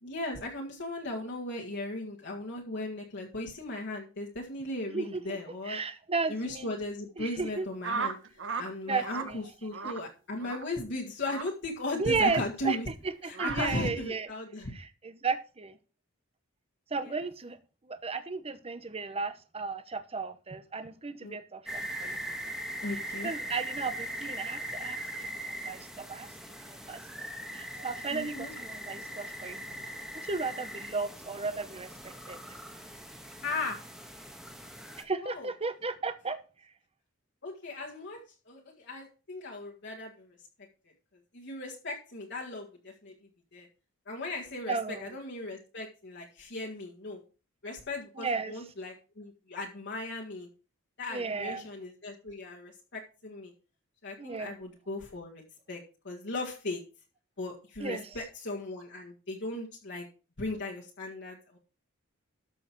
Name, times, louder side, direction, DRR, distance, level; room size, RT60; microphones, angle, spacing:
voice 1, 0.0-5.8 6.3-8.2 8.6-12.9 13.2-14.7 17.0-17.1 21.2-21.4 22.8-23.3 28.1-28.5 33.4-33.8 35.2-35.5 37.4-40.4 41.3-43.1 43.5-43.7 44.1-47.2 47.6-50.5 51.0-53.5 54.0-55.4 55.7-56.8 57.4-60.1 60.4-61.6, left 2 dB, 55° left, 1.9 m, -37 dB
voice 2, 4.9-5.4 5.6-6.7 7.2-7.7 8.9-9.4 12.0-12.8 13.0-14.3 14.7-15.8 16.9-17.6 17.8-22.2 22.9-26.3 26.7-29.6 30.2-32.6 35.0-36.4 44.7-45.2 48.2-48.5 51.1-51.7 54.2-54.5 57.8-58.2, right 4 dB, 30° right, 0.9 m, -34 dB
sound 1, 7.8-8.7 9.0-9.3 9.7-10.0 10.4-10.6 11.2-11.5 12.2-12.4 13.3-13.6, right 5 dB, 60° right, 1.2 m, -35 dB
sound 2, 21.7-35.0, equal, ahead, 1.3 m, -40 dB
13.0 x 6.4 x 4.6 m
head